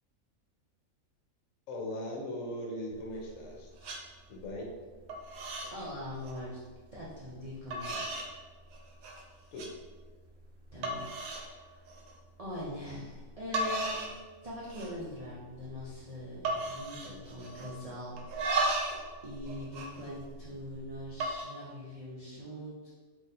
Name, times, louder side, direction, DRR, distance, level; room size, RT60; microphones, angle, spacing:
voice 1, 1.7-3.9 4.3-4.7 9.5-9.7, left 1 dB, 70° left, -1 dB, 1.0 m, -39 dB
sound 1, 2.9-3.5 3.8-4.0 4.4-4.8 5.1-5.7 6.1-6.4 7.1-7.2 7.7-8.3 8.7-9.2 9.6-9.7 10.2-10.3 10.8-11.5 11.9-12.1 13.2-13.3 13.5-14.2 14.5-15.1 15.4-15.5 15.7-16.0 16.4-17.8 18.2-19.0 19.3-20.6 21.1-21.4, right 2 dB, 75° right, 1.0 m, -35 dB
voice 2, 5.7-6.6 6.9-8.2 10.7-11.9 12.4-14.0 14.4-18.2 19.2-22.9, equal, 60° right, -7 dB, 0.4 m, -42 dB
4.1 x 2.7 x 2.6 m, 1.4 s
omnidirectional pair, 1.5 m